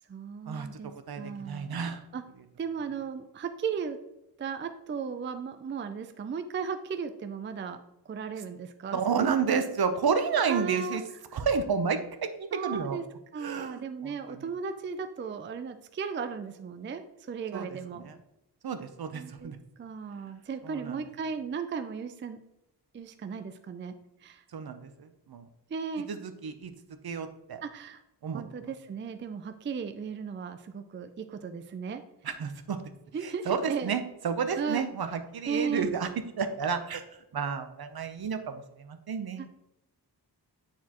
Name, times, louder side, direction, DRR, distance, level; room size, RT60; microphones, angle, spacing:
voice 1, 0.1-1.7 2.1-2.2 2.6-4.0 4.4-9.6 10.4-11.0 11.3-11.4 12.5-13.1 13.3-18.0 19.1-19.5 19.8-22.4 22.9-23.9 24.2-24.4 25.7-26.1 27.6-28.0 28.3-32.0 33.1-33.9 34.5-34.9 35.5-35.9 39.4-39.5, right 6 dB, 30° right, 8 dB, 0.4 m, -36 dB
voice 2, 1.1-2.0 8.9-11.0 11.3-13.0 13.4-14.5 17.5-18.1 18.6-19.6 20.6-21.0 24.5-25.5 26.1-26.2 26.4-26.7 27.0-27.6 28.2-28.7 32.2-32.8 33.2-36.1 36.4-37.0 37.3-39.5, right 6 dB, 60° right, 8 dB, 0.8 m, -31 dB
9.3 x 4.3 x 3.0 m, 0.89 s
wide cardioid pair, 105°, 41 cm